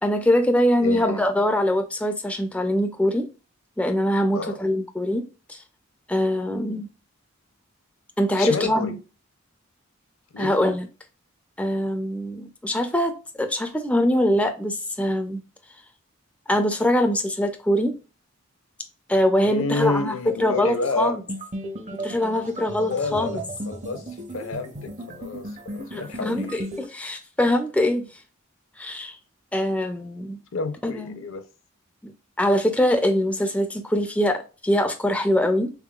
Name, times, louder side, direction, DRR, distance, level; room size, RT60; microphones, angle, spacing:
voice 1, 0.0-3.3 3.8-5.6 6.1-6.9 8.2-8.9 10.4-10.9 11.6-15.4 16.5-18.0 19.1-21.2 22.0-23.4 25.9-28.1 28.8-29.2 29.5-30.4 30.8-31.2 32.0-32.1 32.4-35.7, left 1 dB, 5° left, 0.3 m, -23 dB
voice 2, 0.8-1.2 4.3-4.6 6.4-6.7 8.4-9.0 10.3-10.7 19.4-21.2 22.8-26.6 30.5-31.4, left 3 dB, 65° left, 0.5 m, -30 dB
sound 1, 21.3-26.9, right 1 dB, 35° right, 0.6 m, -35 dB
3.5 x 3.4 x 2.3 m
head